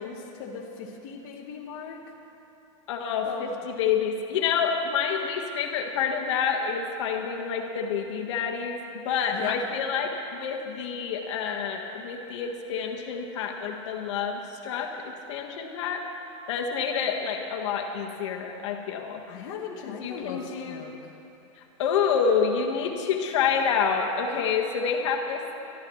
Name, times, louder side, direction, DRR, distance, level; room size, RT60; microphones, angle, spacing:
voice 1, 0.0-2.0 3.2-3.6 9.3-9.6 19.3-20.9, left 7 dB, 45° left, -2 dB, 1.3 m, -37 dB
voice 2, 2.9-8.8 9.0-14.9 15.3-16.0 16.5-19.2 19.8-20.9 21.8-25.5, left 6 dB, 60° left, 1 dB, 1.5 m, -28 dB
23.0 x 13.5 x 3.2 m, 2.8 s
supercardioid pair, 175°, 17 cm